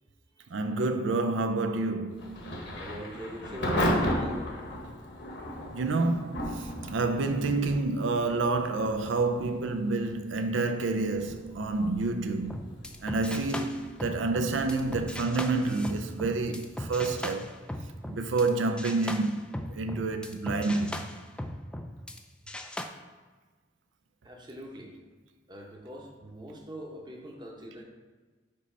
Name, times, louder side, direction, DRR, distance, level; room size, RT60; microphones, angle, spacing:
voice 1, 0.5-2.6 5.7-12.6 13.0-17.5 18.1-21.0, right 3 dB, 90° right, 0.5 m, -29 dB
Thunder / Rain, 2.1-18.9, left 1 dB, 65° left, 1.2 m, -37 dB
voice 2, 2.7-4.5 24.2-25.0 25.5-27.8, right 1 dB, 25° right, 0.8 m, -42 dB
sound 1, 12.4-18.5 18.8-22.2 22.5-22.8, left 1 dB, 5° left, 0.3 m, -38 dB
5.3 x 4.0 x 5.4 m
head